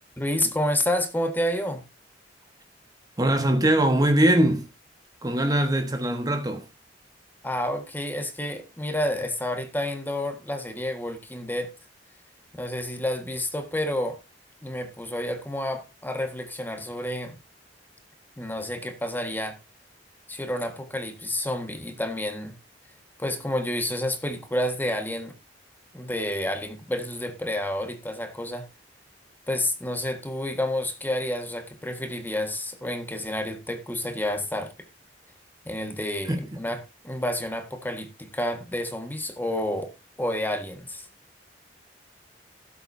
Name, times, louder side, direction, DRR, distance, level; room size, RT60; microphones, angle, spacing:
voice 1, 0.2-1.8 7.4-11.7 12.5-14.2 14.6-17.4 18.4-19.6 20.3-22.5 23.2-25.3 25.9-28.7 29.5-34.7 35.6-39.9 40.2-41.1, left 1 dB, 10° left, 1.6 m, -29 dB
voice 2, 3.2-4.7 5.2-6.7 36.3-36.4, right 1 dB, 20° right, 1.2 m, -21 dB
17.0 x 7.9 x 2.7 m
head